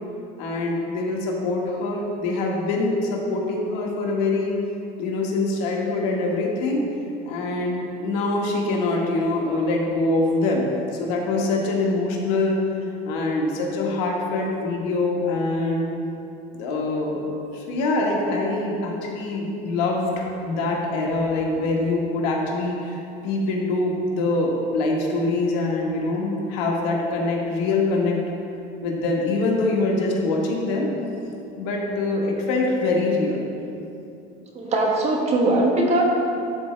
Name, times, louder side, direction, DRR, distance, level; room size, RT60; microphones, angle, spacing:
voice 1, 0.4-4.5 5.0-6.8 7.2-10.7 11.0-12.6 12.9-15.9 16.5-28.2 28.8-30.9 31.6-33.5, left 2 dB, 90° left, -1 dB, 1.3 m, -24 dB
voice 2, 34.5-36.0, right 2 dB, 35° right, -1 dB, 1.2 m, -20 dB
12.0 x 4.2 x 3.2 m, 2.7 s
cardioid pair, 130°, 20 cm